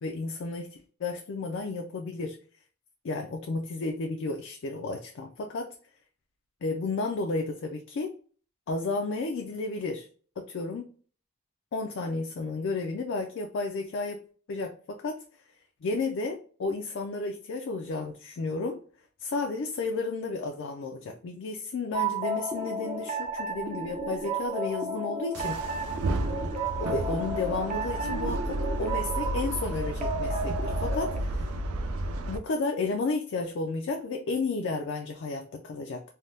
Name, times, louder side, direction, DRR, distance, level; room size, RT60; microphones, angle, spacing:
voice 1, 0.0-2.4 3.0-5.7 6.6-8.1 8.7-10.1 10.5-10.9 11.7-14.2 14.5-15.2 15.8-18.8 19.2-25.8 26.8-31.5 32.3-36.0, left 3 dB, 55° left, 3 dB, 0.4 m, -32 dB
sound 1, 21.9-31.2, right 3 dB, 30° right, 0.5 m, -33 dB
sound 2, 25.3-32.4, right 1 dB, 90° right, 0.4 m, -32 dB
3.4 x 2.2 x 2.6 m, 0.43 s
head